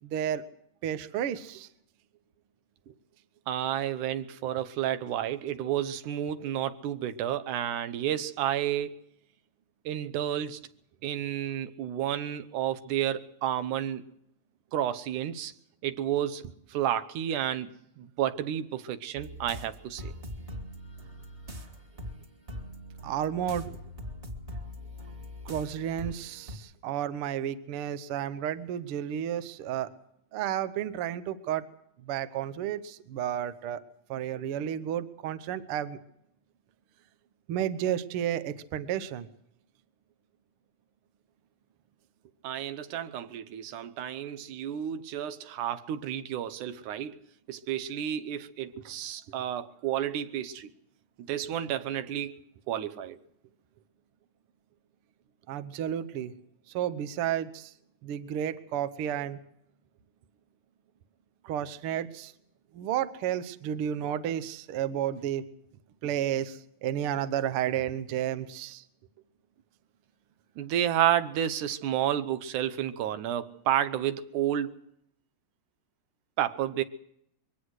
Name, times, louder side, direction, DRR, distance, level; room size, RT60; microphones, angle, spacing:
voice 1, 0.0-0.4 0.8-1.7 23.0-23.7 25.4-29.9 30.3-31.6 32.1-33.8 34.1-36.0 37.5-39.3 55.5-56.3 56.7-57.7 58.0-59.4 61.4-62.3 62.7-65.4 66.0-68.8, right 10 dB, 60° right, 1.6 m, -32 dB
voice 2, 3.5-8.9 9.9-10.6 11.0-14.0 14.7-15.5 15.8-16.4 16.7-20.1 42.4-47.2 47.5-50.7 51.2-52.4 52.7-53.2 70.6-74.7 76.4-76.8, right 11 dB, 85° right, 2.4 m, -31 dB
sound 1, 19.2-26.6, equal, 25° right, 2.2 m, -42 dB
23.0 x 17.5 x 6.4 m
omnidirectional pair, 3.5 m